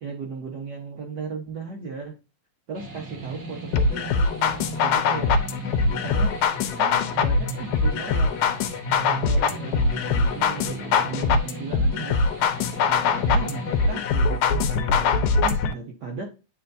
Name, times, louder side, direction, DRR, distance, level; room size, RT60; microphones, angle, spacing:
voice 1, 0.0-2.1 2.7-5.3 5.9-6.4 6.8-8.4 9.1-12.2 12.9-16.2, right 4 dB, 90° right, -1 dB, 0.9 m, -36 dB
sound 1, 2.7-14.1, right 2 dB, 40° right, 1.0 m, -38 dB
sound 2, 3.7-15.7, left 4 dB, 85° left, 2.1 m, -23 dB
8.5 x 4.4 x 2.6 m, 0.30 s
omnidirectional pair, 3.5 m